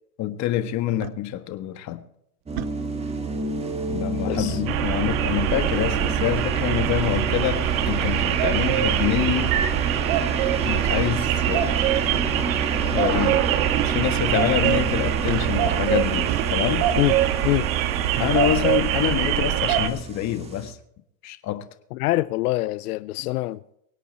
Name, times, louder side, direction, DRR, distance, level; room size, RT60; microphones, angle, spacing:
voice 1, 0.2-2.0 3.9-9.6 10.6-11.7 12.8-13.4 13.8-16.9 18.2-20.8 21.2-21.7, left 12 dB, 40° left, 1.5 m, -26 dB
sound 1, 1.0-1.1 2.6-2.7 4.3-4.6 6.4-6.6 7.4-7.5 8.3-8.4 8.7-8.8 10.1-10.3 11.6-11.8 12.1-12.2 13.7-14.0 14.6-15.8 16.3-16.5, right 17 dB, 40° right, 0.6 m, -33 dB
sound 2, 2.5-20.7, right 4 dB, 15° right, 1.9 m, -29 dB
voice 2, 4.3-4.6 17.0-17.2 17.4-17.7 21.9-23.6, left 18 dB, 85° left, 0.7 m, -24 dB
sound 3, 4.7-19.9, right 12 dB, 65° right, 1.6 m, -24 dB
24.0 x 8.5 x 4.3 m
supercardioid pair, 135°, 44 cm